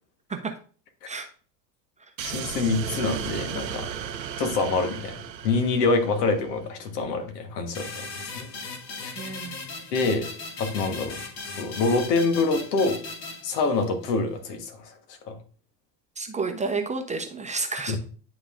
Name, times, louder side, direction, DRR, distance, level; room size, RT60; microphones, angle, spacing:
voice 1, 2.2-3.9 4.4-8.1 8.4-8.5 9.0-9.3 9.9-10.3 10.6-11.2 11.6-13.0 13.4-14.9 15.2-15.4 17.9-18.0, left 3 dB, 70° left, 6 dB, 1.5 m, -26 dB
sound 1, 2.2-6.5, right 8 dB, 85° right, 0.8 m, -35 dB
sound 2, 7.7-14.1, left 3 dB, 50° left, 2.0 m, -38 dB
voice 2, 9.2-9.6 16.2-18.0, right 4 dB, 15° right, 5 dB, 0.7 m, -30 dB
10.5 x 3.8 x 2.5 m, 0.42 s
hypercardioid pair, 85°, 50 cm